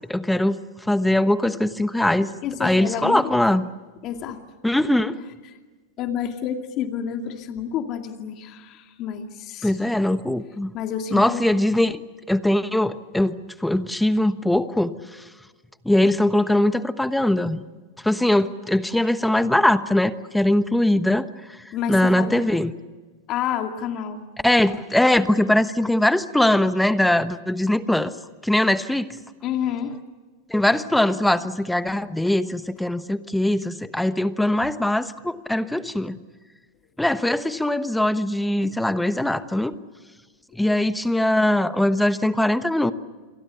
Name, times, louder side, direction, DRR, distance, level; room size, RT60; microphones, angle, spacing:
voice 1, 0.1-0.6 0.9-2.3 2.6-3.7 4.6-5.2 9.6-10.7 11.1-12.0 12.3-15.0 15.8-17.6 18.0-21.3 21.9-22.7 24.4-28.1 28.4-29.1 30.5-36.2 37.0-39.7 40.6-42.9, left 1 dB, 5° left, 12 dB, 1.1 m, -21 dB
voice 2, 2.4-3.6 4.0-4.4 5.4-5.6 6.0-9.9 10.7-11.6 21.7-22.4 23.3-24.2 29.4-29.9, left 9 dB, 45° left, 5 dB, 2.3 m, -29 dB
29.0 x 23.5 x 7.0 m, 1.4 s
hypercardioid pair, 110°, 0 cm